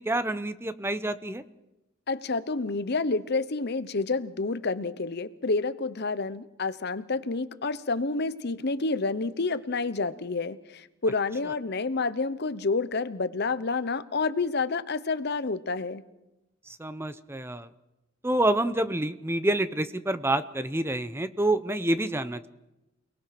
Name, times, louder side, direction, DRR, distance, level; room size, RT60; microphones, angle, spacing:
voice 1, 0.0-1.4 16.7-17.7 18.2-22.5, right 1 dB, 10° right, 12 dB, 0.7 m, -28 dB
voice 2, 2.1-16.0, left 3 dB, 55° left, 14 dB, 0.9 m, -29 dB
28.5 x 19.5 x 6.0 m, 0.96 s
head